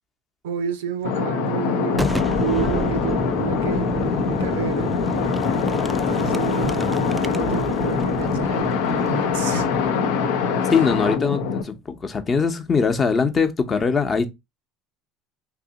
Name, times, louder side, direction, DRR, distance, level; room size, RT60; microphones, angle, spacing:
voice 1, 0.4-4.9 6.1-9.7 10.6-10.7, right 8 dB, 90° right, 0.5 m, -30 dB
sound 1, 1.0-11.6, left 6 dB, 80° left, 0.5 m, -23 dB
Boom, 1.9-11.5, equal, 5° right, 0.3 m, -31 dB
voice 2, 10.7-14.2, left 5 dB, 35° left, 0.7 m, -21 dB
2.9 x 2.6 x 3.7 m
supercardioid pair, 85°, 0 cm